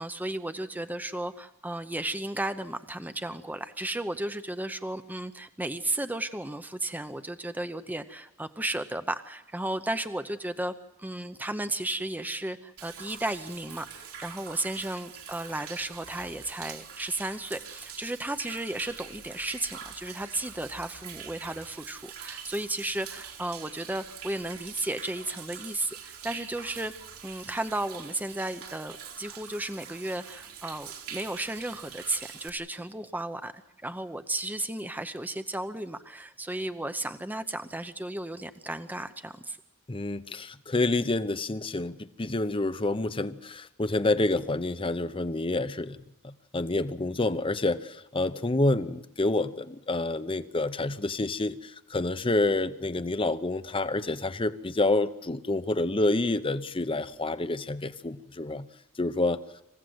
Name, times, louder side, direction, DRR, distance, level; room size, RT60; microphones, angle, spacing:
voice 1, 0.0-10.7 11.0-26.9 27.2-33.5 33.8-39.6, right 1 dB, 10° right, 9 dB, 0.7 m, -34 dB
Human voice / Rain / Stream, 12.8-32.5, right 7 dB, 70° right, 3.6 m, -44 dB
voice 2, 39.9-46.0 46.2-58.7 59.0-59.4, left 2 dB, 25° left, 12 dB, 0.8 m, -28 dB
26.5 x 16.0 x 7.9 m, 0.87 s
head